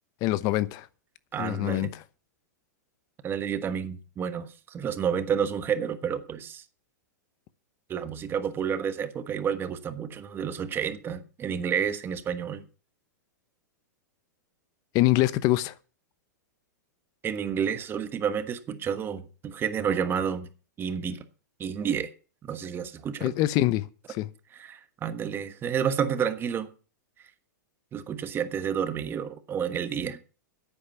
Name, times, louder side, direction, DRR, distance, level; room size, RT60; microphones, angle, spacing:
voice 1, 0.2-0.9 1.4-2.0 14.9-15.7 23.2-24.3, left 16 dB, 40° left, 0.8 m, -25 dB
voice 2, 1.3-1.9 3.2-6.6 7.9-12.6 17.2-20.5 20.8-21.2 21.6-22.1 22.4-23.3 24.5-26.7 27.9-30.2, right 7 dB, 20° right, 1.3 m, -30 dB
10.5 x 8.5 x 7.1 m
hypercardioid pair, 135°, 10 cm